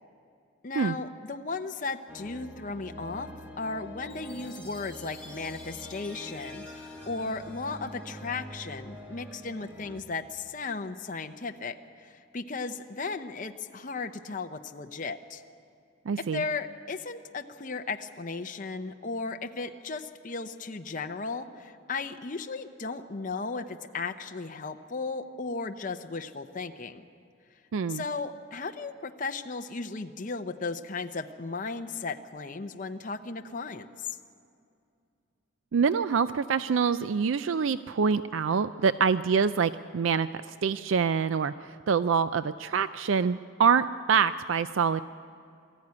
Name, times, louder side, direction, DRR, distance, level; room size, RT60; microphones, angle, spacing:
voice 1, 0.6-3.3 3.6-15.4 16.2-27.0 27.9-34.1, left 4 dB, 40° left, 6 dB, 0.8 m, -36 dB
sound 1, 2.1-10.0, equal, 10° right, 1.9 m, -45 dB
Chime, 4.0-8.6, left 2 dB, 5° left, 3.8 m, -50 dB
voice 2, 16.1-16.4 27.7-28.0 35.7-45.0, right 6 dB, 75° right, 13 dB, 0.4 m, -26 dB
22.0 x 14.5 x 9.6 m, 2.4 s
head